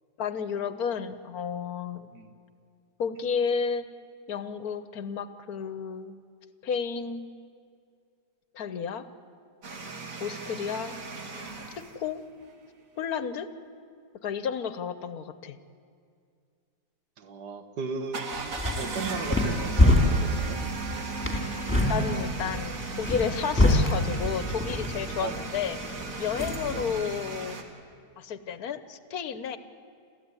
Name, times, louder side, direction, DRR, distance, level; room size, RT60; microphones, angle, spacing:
voice 1, 0.2-2.1 3.0-3.9 4.3-6.1 6.6-7.3 8.5-9.1 10.2-11.0 11.8-12.2 13.0-13.5 14.2-15.6 21.9-27.6 28.2-29.6, left 6 dB, 70° left, 13 dB, 1.4 m, -32 dB
sound 1, 9.6-11.9 18.1-27.6, right 3 dB, 55° right, 2.2 m, -36 dB
voice 2, 17.2-20.6 25.2-25.4 26.7-26.9, right 4 dB, 85° right, 8 dB, 2.0 m, -37 dB
sound 2, 18.3-26.8, left 1 dB, 5° left, 3.3 m, -26 dB
29.0 x 14.0 x 9.7 m, 2.3 s
omnidirectional pair, 1.7 m